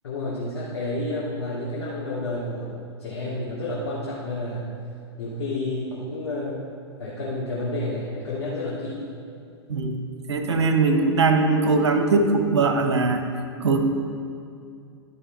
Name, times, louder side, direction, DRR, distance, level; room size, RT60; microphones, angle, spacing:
voice 1, 0.0-2.7 3.0-4.7 5.2-6.6 7.0-9.1, left 2 dB, 70° left, -7 dB, 2.0 m, -30 dB
voice 2, 10.3-13.2 13.6-13.8, right 3 dB, 75° right, 6 dB, 0.9 m, -20 dB
12.0 x 5.3 x 4.4 m, 2.4 s
hypercardioid pair, 105°, 14 cm